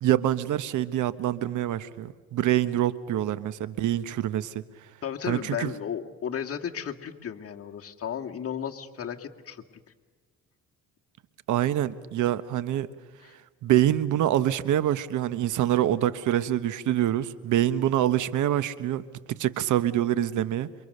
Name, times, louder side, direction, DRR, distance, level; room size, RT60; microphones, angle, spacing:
voice 1, 0.0-4.6 5.3-5.7 11.5-12.9 13.6-20.7, right 12 dB, 80° right, 1.1 m, -25 dB
voice 2, 5.0-9.6 13.2-13.3, left 8 dB, 50° left, 2.0 m, -34 dB
28.0 x 24.5 x 6.7 m
cardioid pair, 90°, 30 cm